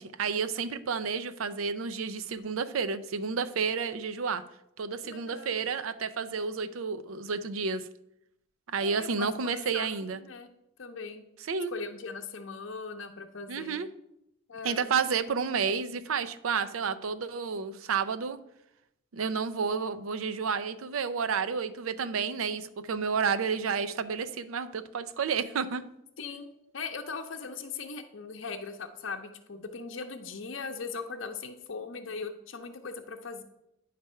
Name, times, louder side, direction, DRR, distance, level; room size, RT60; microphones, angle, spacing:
voice 1, 0.0-4.4 4.8-7.8 8.7-10.2 11.5-11.7 13.5-13.9 14.6-18.4 19.1-25.8, right 5 dB, 90° right, 12 dB, 0.5 m, -31 dB
voice 2, 5.0-5.6 8.8-10.5 10.8-11.2 11.7-13.8 14.5-14.9 26.2-33.4, left 4 dB, 65° left, 4 dB, 0.7 m, -40 dB
9.9 x 3.4 x 5.5 m, 0.82 s
head